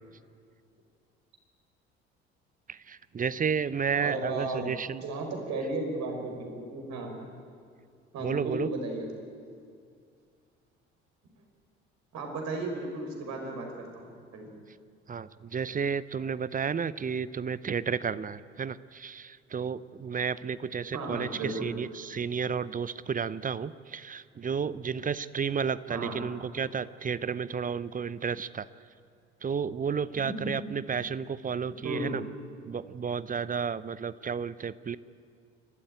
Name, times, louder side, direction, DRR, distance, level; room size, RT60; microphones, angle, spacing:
voice 1, 2.7-5.0 8.2-8.7 15.1-28.7 29.4-32.2 32.6-35.0, right 6 dB, 25° right, 17 dB, 0.7 m, -32 dB
voice 2, 4.0-4.7 5.0-7.3 8.1-9.1 12.1-14.5 20.9-21.7 25.9-26.2 31.8-32.2, right 2 dB, 55° right, 3 dB, 5.2 m, -35 dB
29.0 x 13.0 x 9.0 m, 2.2 s
figure-of-eight pair, 55°, 33 cm